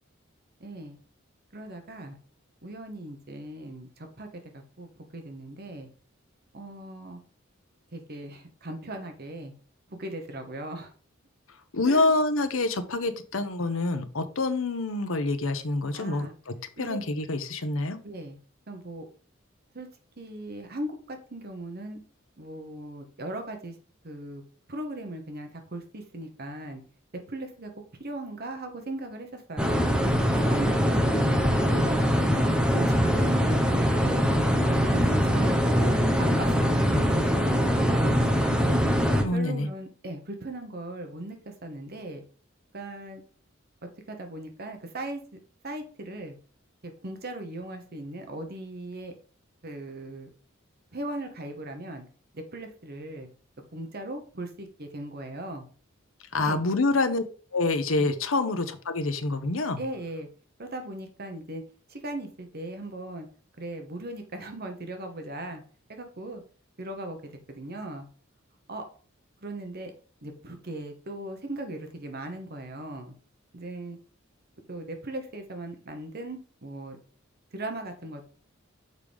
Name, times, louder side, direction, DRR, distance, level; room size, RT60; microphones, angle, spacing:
voice 1, 0.6-1.0 1.5-2.2 2.6-5.9 6.5-7.2 7.9-9.5 9.9-10.9 11.9-12.1 15.9-16.3 16.8-17.0 18.0-18.4 18.7-19.1 19.7-19.9 20.2-22.0 22.4-23.8 24.0-24.4 24.7-26.8 27.3-27.7 28.0-30.0 30.3-31.0 31.4-34.2 34.7-35.9 36.2-38.2 38.6-38.8 39.3-42.2 42.7-43.2 44.1-45.2 45.6-46.3 46.8-49.1 49.6-50.3 50.9-52.0 52.3-53.3 53.7-55.7 56.4-56.6 58.0-58.1 59.8-60.3 60.6-61.6 61.9-63.3 63.6-65.6 65.9-66.4 66.8-68.0 68.7-68.8 69.4-69.9 70.2-73.1 73.5-74.0 74.7-77.0 77.5-78.3, right 1 dB, 50° right, 5 dB, 1.2 m, -38 dB
voice 2, 11.7-18.0 39.2-39.7 56.3-57.2 57.5-59.8, left 2 dB, 75° left, 10 dB, 0.9 m, -27 dB
sound 1, 29.6-39.2, equal, 5° right, 0.9 m, -23 dB
6.6 x 5.0 x 3.5 m, 0.40 s
head